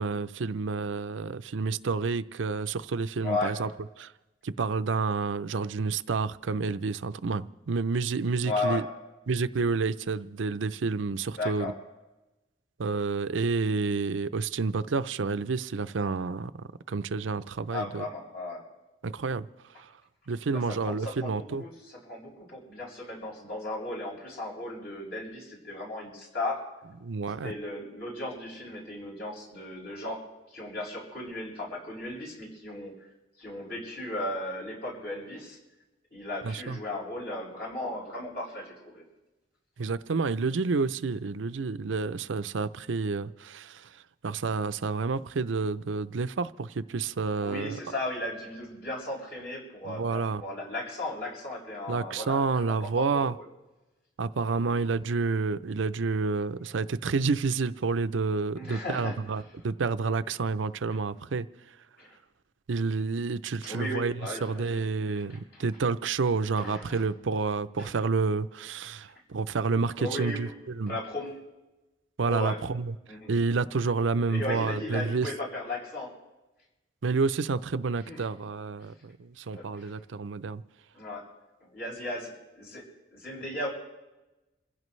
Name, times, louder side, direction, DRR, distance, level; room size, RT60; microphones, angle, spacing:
voice 1, 0.0-3.7 4.0-4.1 4.4-8.8 9.3-11.7 12.8-18.1 19.0-19.5 19.8-19.9 20.3-21.6 27.0-27.5 36.4-36.8 39.8-47.8 49.9-50.4 51.9-53.4 54.2-61.5 62.7-71.0 72.2-73.0 73.3-75.3 77.0-80.6, right 4 dB, 85° right, 0.5 m, -29 dB
voice 2, 3.2-3.5 8.4-8.8 11.3-11.7 17.7-18.6 20.5-26.6 27.3-30.2 30.5-32.9 33.4-35.6 36.1-39.0 47.4-53.4 54.6-54.9 58.5-59.2 62.0-62.1 63.6-64.8 65.1-65.7 66.6-67.0 67.8-67.9 70.0-70.4 70.9-71.4 72.3-72.6 73.1-73.3 74.3-76.1 77.8-78.3 79.5-79.9 80.9-81.2 81.6-82.8 83.1-83.7, left 2 dB, 55° left, 7.3 m, -36 dB
28.0 x 16.0 x 3.2 m
head